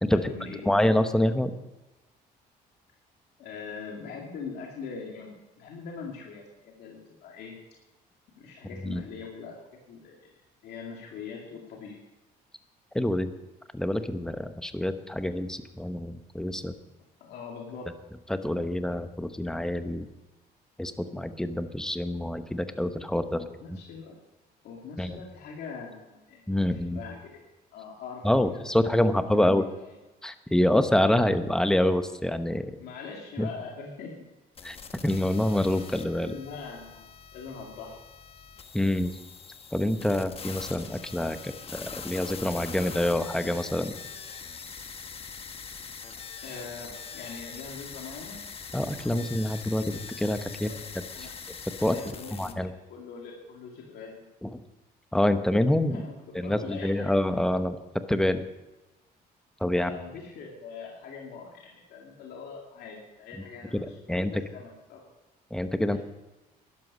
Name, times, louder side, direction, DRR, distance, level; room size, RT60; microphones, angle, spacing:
voice 1, 0.1-0.8 3.4-7.5 8.4-10.3 10.6-12.0 17.2-17.9 23.3-24.2 24.6-27.4 27.7-29.5 32.8-34.1 36.2-38.0 46.4-48.4 50.5-50.8 51.1-51.3 51.8-54.3 55.9-57.1 59.7-64.0 64.3-65.0 65.9-66.0, left 5 dB, 75° left, -1 dB, 2.4 m, -42 dB
voice 2, 0.7-1.5 8.8-9.0 12.9-13.3 13.7-16.7 18.3-20.1 20.8-23.4 25.0-25.2 26.5-27.0 28.2-29.6 30.2-32.7 33.4-33.5 34.6-34.8 35.0-36.3 38.7-39.1 39.7-43.9 48.7-50.7 51.8-52.0 52.3-52.7 54.4-54.5 55.1-56.0 56.3-57.8 58.1-58.4 59.6-59.9 63.7-64.3 65.5-66.0, left 1 dB, 5° left, 9 dB, 0.9 m, -26 dB
sound 1, 34.6-52.5, left 6 dB, 35° left, 1.2 m, -43 dB
12.5 x 11.0 x 5.5 m, 1.1 s
cardioid pair, 110°, 17 cm